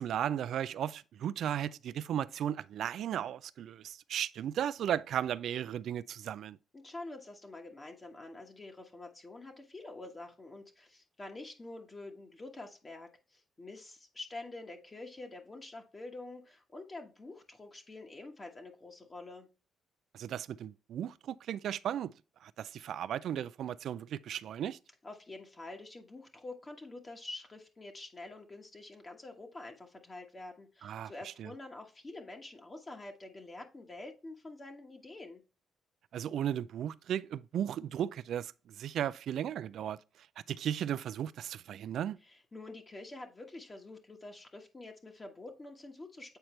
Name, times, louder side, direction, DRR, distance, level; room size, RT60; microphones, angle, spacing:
voice 1, 0.0-6.6 20.1-22.1 22.4-24.8 30.8-31.5 36.1-42.2, right 10 dB, 70° right, 0.3 m, -36 dB
voice 2, 6.7-19.5 25.0-35.4 42.3-46.4, left 2 dB, 25° left, 1.3 m, -47 dB
7.8 x 4.4 x 3.2 m
cardioid pair, 90°, 0 cm